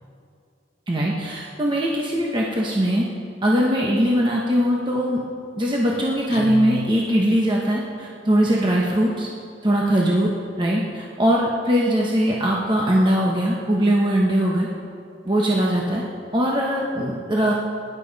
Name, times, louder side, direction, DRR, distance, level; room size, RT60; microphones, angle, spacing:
voice 1, 0.9-3.1 3.4-5.2 5.6-9.3 9.6-10.3 10.6-14.7 15.2-16.0 16.3-17.5, equal, 25° right, -3 dB, 1.1 m, -21 dB
Guitar, 6.3-7.6, left 3 dB, 70° left, 0.4 m, -33 dB
19.0 x 11.0 x 4.1 m, 2.4 s
head